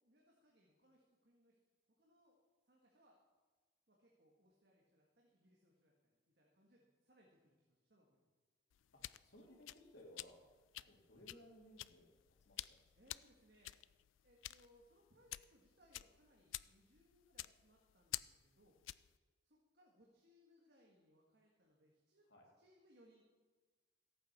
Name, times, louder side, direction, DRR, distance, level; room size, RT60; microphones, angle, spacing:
voice 1, 0.0-1.6 2.0-2.4 2.7-3.2 3.9-8.3 10.7-10.9 12.9-13.8 14.2-18.8 19.4-22.2 22.6-23.2, equal, 55° right, -2 dB, 1.7 m, -71 dB
sound 1, 8.7-19.2, left 16 dB, 85° left, 0.3 m, -51 dB
voice 2, 8.9-10.5 10.9-12.1 12.4-12.8 22.3-22.5, left 1 dB, 65° left, -2 dB, 3.2 m, -61 dB
14.5 x 8.8 x 6.1 m, 1.3 s
head